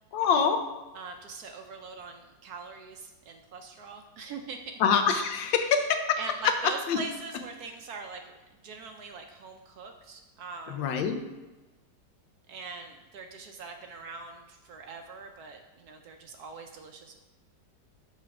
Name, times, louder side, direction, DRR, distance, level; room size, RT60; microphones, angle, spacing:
voice 1, 0.1-0.6 4.8-6.2 6.9-7.0 10.7-11.2, left 6 dB, 85° left, 7 dB, 1.5 m, -25 dB
voice 2, 0.9-4.8 5.5-5.6 6.2-8.3 8.6-10.9 12.5-17.2, right 4 dB, 70° right, 5 dB, 1.0 m, -42 dB
6.1 x 4.1 x 5.8 m, 1.1 s
omnidirectional pair, 2.0 m